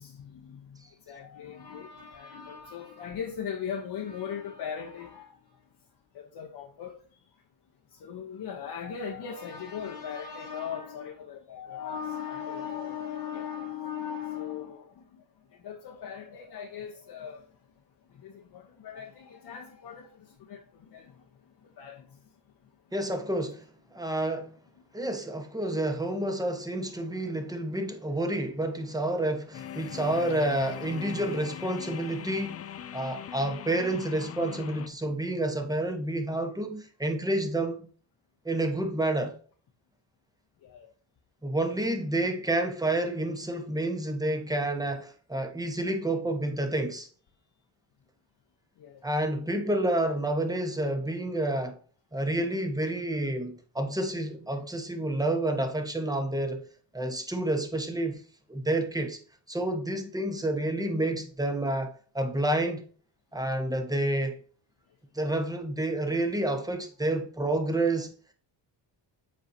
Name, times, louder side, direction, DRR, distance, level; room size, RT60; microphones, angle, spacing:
voice 1, 0.0-5.3 6.1-7.0 7.9-15.2 15.5-17.4 18.1-21.2 21.8-22.1 27.2-27.3 40.6-40.9 48.8-49.0, left 7 dB, 55° left, 1.0 m, -39 dB
voice 2, 22.9-24.5 24.9-32.6 32.9-37.9 38.4-39.3 41.4-47.1 49.0-51.8 52.1-56.6 56.9-58.2 58.5-59.2 59.5-62.9 63.3-64.4 65.1-68.1, right 1 dB, 10° right, 1.1 m, -29 dB
sound 1, 29.5-34.9, left 9 dB, 35° left, 0.4 m, -40 dB
7.5 x 4.6 x 2.8 m
cardioid pair, 75°, 46 cm